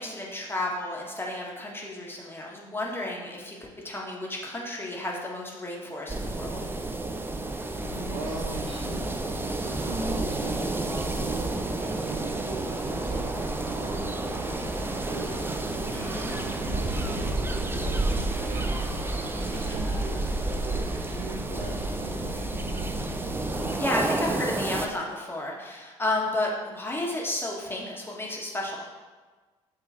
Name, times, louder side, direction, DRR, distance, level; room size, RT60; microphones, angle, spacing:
voice 1, 0.0-6.7 15.9-16.4 19.5-19.8 23.8-28.9, left 1 dB, 15° left, -3 dB, 1.8 m, -32 dB
sound 1, 6.1-24.9, right 2 dB, 15° right, 0.6 m, -31 dB
sound 2, 7.7-23.8, equal, 85° right, 1.2 m, -39 dB
voice 2, 8.1-8.6 9.8-15.4 15.9-22.8, right 3 dB, 60° right, 0 dB, 1.2 m, -40 dB
7.9 x 3.8 x 4.4 m, 1.3 s
figure-of-eight pair, 50°, 15 cm